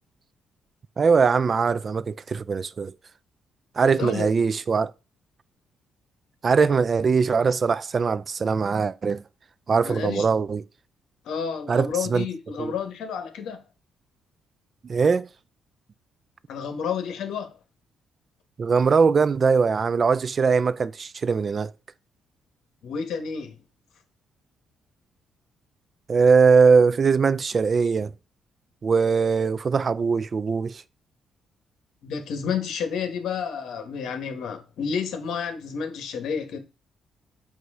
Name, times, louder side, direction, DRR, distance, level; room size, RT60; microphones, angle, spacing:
voice 1, 1.0-2.9 3.8-4.9 6.4-9.2 9.7-10.6 11.7-12.2 12.6-12.7 14.8-15.3 18.6-21.7 26.1-28.1 28.8-30.8, right 5 dB, 40° right, 0.4 m, -21 dB
voice 2, 3.8-4.3 9.8-10.3 11.2-13.6 16.5-17.6 22.8-23.6 32.0-36.6, left 6 dB, 75° left, 1.3 m, -30 dB
8.0 x 2.7 x 4.8 m
cardioid pair, 90°, 0 cm